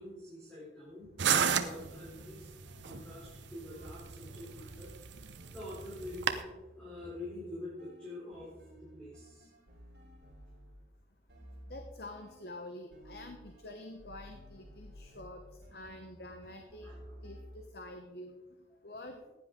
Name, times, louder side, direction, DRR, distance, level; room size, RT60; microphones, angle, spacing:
voice 1, 0.0-2.5 2.8-4.9 5.2-6.5 6.8-8.5 8.8-9.5 16.8-17.2, left 1 dB, 5° left, -9 dB, 3.5 m, -46 dB
sound 1, 1.2-6.4, right 7 dB, 85° right, 0.8 m, -34 dB
sound 2, 1.7-10.9 11.3-12.6 12.9-17.6, equal, 60° right, 4.4 m, -54 dB
voice 2, 11.7-15.4 15.7-16.9 17.2-18.4 18.8-19.2, left 1 dB, 60° left, 5 dB, 1.0 m, -47 dB
15.5 x 10.0 x 3.7 m, 1.1 s
head